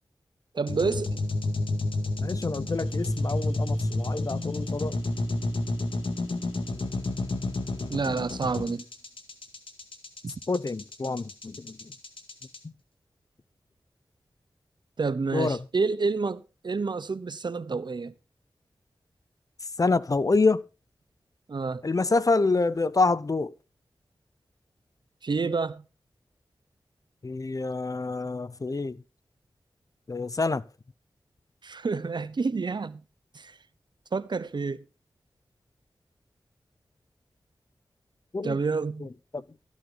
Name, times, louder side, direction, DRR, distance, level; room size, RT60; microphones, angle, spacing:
voice 1, 0.5-1.2 7.9-8.8 15.0-18.1 21.5-21.8 25.2-25.9 31.6-33.0 33.3-33.6 34.1-34.8 38.4-39.1, right 4 dB, 60° right, 0.8 m, -29 dB
sound 1, 0.7-12.6, left 2 dB, 75° left, 1.9 m, -30 dB
voice 2, 2.2-5.0 10.5-11.8 15.3-15.6 19.8-20.6 21.8-23.5 27.2-29.0 30.1-30.6 38.3-38.6 39.3-39.4, left 3 dB, 40° left, 0.6 m, -27 dB
13.5 x 9.5 x 3.9 m
cardioid pair, 40°, 9 cm